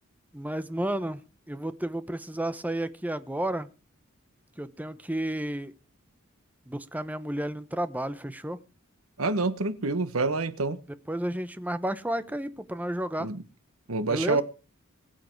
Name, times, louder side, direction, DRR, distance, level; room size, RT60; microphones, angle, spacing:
voice 1, 0.3-3.7 4.6-5.7 6.7-8.6 11.1-13.3 14.1-14.4, right 1 dB, 10° right, 0.8 m, -32 dB
voice 2, 9.2-10.8 13.2-13.4 13.9-14.4, right 3 dB, 90° right, 1.2 m, -27 dB
21.5 x 7.8 x 4.5 m
head